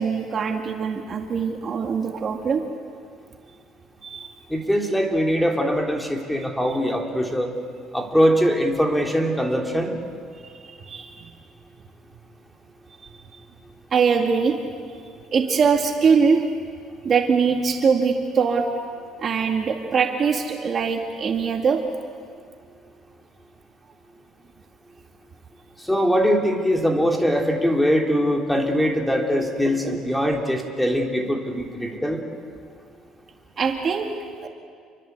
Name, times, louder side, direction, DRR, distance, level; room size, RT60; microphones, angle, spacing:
voice 1, 0.0-2.6 4.0-4.3 6.6-6.7 10.4-11.3 13.9-14.6 15.3-16.4 17.0-18.7 19.2-21.8 29.6-30.0 33.6-34.1 34.4-34.5, right 5 dB, 40° right, 3 dB, 2.2 m, -22 dB
voice 2, 4.5-7.5 7.9-9.9 25.9-32.2, equal, 5° left, 1 dB, 3.5 m, -22 dB
29.0 x 23.5 x 8.3 m, 2.1 s
cardioid pair, 120°, 0 cm